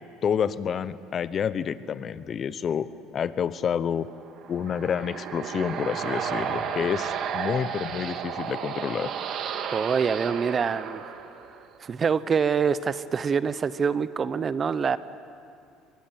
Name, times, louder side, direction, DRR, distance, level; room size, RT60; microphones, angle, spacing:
voice 1, 0.2-2.9 3.1-4.1 4.5-9.1, left 8 dB, 40° left, 15 dB, 0.9 m, -28 dB
sound 1, 4.2-11.8, right 7 dB, 55° right, 1.8 m, -33 dB
voice 2, 9.6-11.0 11.8-15.0, right 6 dB, 35° right, 15 dB, 0.7 m, -25 dB
24.0 x 21.5 x 9.2 m, 2.4 s
supercardioid pair, 100°, 0 cm